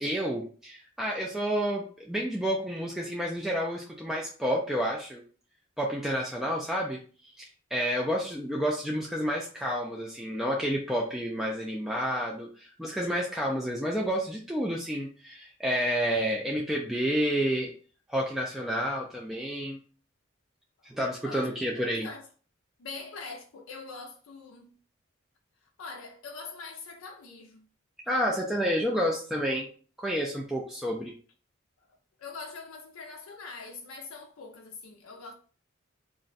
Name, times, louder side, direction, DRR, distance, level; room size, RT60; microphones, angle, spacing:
voice 1, 0.0-5.2 5.8-17.7 18.1-19.8 20.8-22.1 28.1-29.7 30.0-31.1, equal, ahead, 0.3 m, -30 dB
voice 2, 20.8-21.5 22.0-22.3 22.8-24.7 25.6-27.7 31.9-35.3, left 4 dB, 85° left, 0.4 m, -43 dB
2.4 x 2.1 x 3.9 m
head